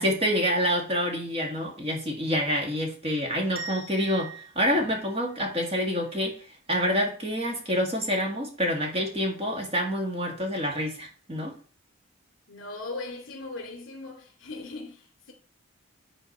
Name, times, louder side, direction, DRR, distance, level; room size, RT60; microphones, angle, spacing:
voice 1, 0.0-4.3 4.6-6.4 6.7-11.5, equal, 25° right, 1.9 m, -27 dB
sound 1, 3.5-6.3, right 4 dB, 10° right, 2.4 m, -43 dB
voice 2, 12.5-15.3, left 3 dB, 65° left, 2.7 m, -39 dB
9.4 x 4.4 x 5.5 m
head